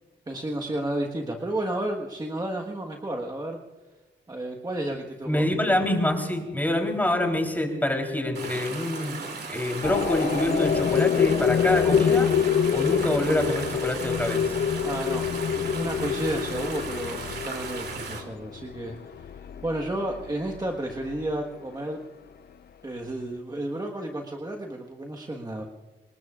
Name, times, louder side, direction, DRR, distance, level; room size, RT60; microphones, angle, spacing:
voice 1, 0.3-3.6 4.3-5.7 14.8-15.3 15.5-19.3 19.6-22.0 22.8-25.6, right 1 dB, 20° right, 2 dB, 1.4 m, -32 dB
voice 2, 5.3-9.2 9.5-12.3 12.7-14.6, left 1 dB, 10° left, 2 dB, 3.6 m, -26 dB
sound 1, 8.4-18.2, right 4 dB, 55° right, 3.0 m, -36 dB
sound 2, 9.8-21.5, left 7 dB, 55° left, 0.7 m, -26 dB
27.0 x 19.5 x 2.5 m, 1.3 s
wide cardioid pair, 120°, 20 cm